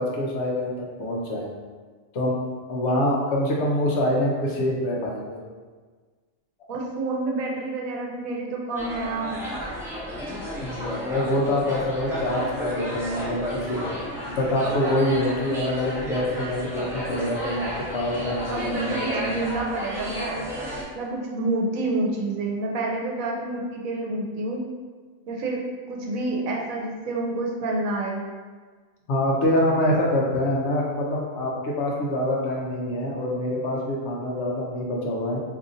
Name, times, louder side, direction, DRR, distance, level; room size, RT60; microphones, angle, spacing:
voice 1, 0.0-1.5 2.1-2.4 2.7-5.4 10.6-13.8 14.3-19.5 29.1-35.4, left 1 dB, 65° left, -3 dB, 0.8 m, -25 dB
voice 2, 6.7-9.4 18.5-20.4 20.9-24.6 25.3-25.6 25.9-28.2, right 2 dB, 80° right, -1 dB, 1.0 m, -28 dB
sound 1, 8.7-20.8, equal, 5° right, 0.5 m, -32 dB
2.7 x 2.5 x 3.8 m, 1.5 s
omnidirectional pair, 1.4 m